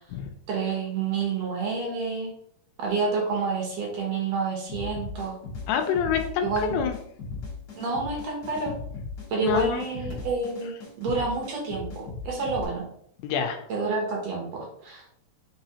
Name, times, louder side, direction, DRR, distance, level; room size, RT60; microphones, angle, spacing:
voice 1, 0.5-2.3 2.8-5.4 6.4-6.9 7.8-8.7 9.3-10.7 11.0-12.9 13.7-15.1, right 4 dB, 70° right, -1 dB, 1.8 m, -28 dB
sound 1, 4.7-12.6, left 4 dB, 60° left, 1.1 m, -37 dB
voice 2, 5.7-7.0 9.4-9.9 13.2-13.6, left 8 dB, 80° left, 6 dB, 2.0 m, -27 dB
4.7 x 3.9 x 2.8 m, 0.71 s
omnidirectional pair, 3.7 m